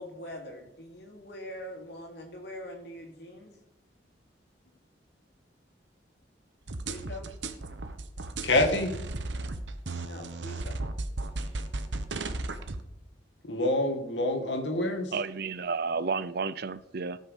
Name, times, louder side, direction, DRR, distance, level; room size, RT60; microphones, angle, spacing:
voice 1, 0.0-3.5 6.8-7.3 10.0-10.8, left 1 dB, 65° left, 1 dB, 2.8 m, -43 dB
sound 1, 6.7-12.8, right 2 dB, 80° right, 1.1 m, -35 dB
voice 2, 8.4-8.9 13.4-15.1, left 1 dB, 80° left, 4 dB, 2.1 m, -26 dB
voice 3, 15.1-17.2, right 4 dB, 60° right, 16 dB, 0.6 m, -31 dB
18.0 x 6.5 x 5.5 m, 0.84 s
head